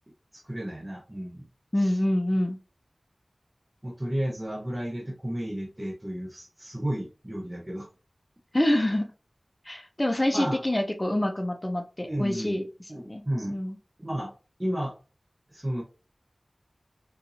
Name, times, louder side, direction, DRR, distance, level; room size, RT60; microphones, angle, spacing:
voice 1, 0.3-1.4 1.8-2.0 3.8-7.9 10.3-10.6 12.0-12.6 12.9-13.6 14.0-14.3 14.6-15.0 15.5-15.8, right 1 dB, 25° right, 0.8 m, -32 dB
voice 2, 1.7-2.6 8.5-9.1 9.7-12.7 13.1-13.2 13.5-13.8, left 1 dB, 25° left, 0.8 m, -26 dB
4.4 x 2.6 x 2.7 m
wide cardioid pair, 55°, 0 cm